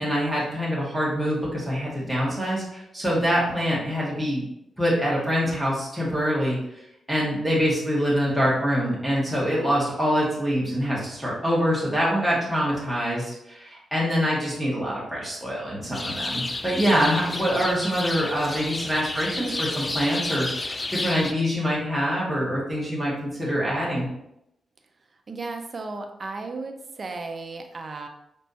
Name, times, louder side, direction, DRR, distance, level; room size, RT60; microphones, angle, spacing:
voice 1, 0.0-4.4 4.8-6.6 7.1-24.1, equal, 5° right, -6 dB, 1.7 m, -25 dB
sound 1, 15.9-21.3, left 2 dB, 25° left, 0.4 m, -31 dB
voice 2, 25.3-28.1, right 3 dB, 40° right, 5 dB, 0.7 m, -35 dB
5.2 x 3.4 x 2.8 m, 0.81 s
cardioid pair, 80°, 0 cm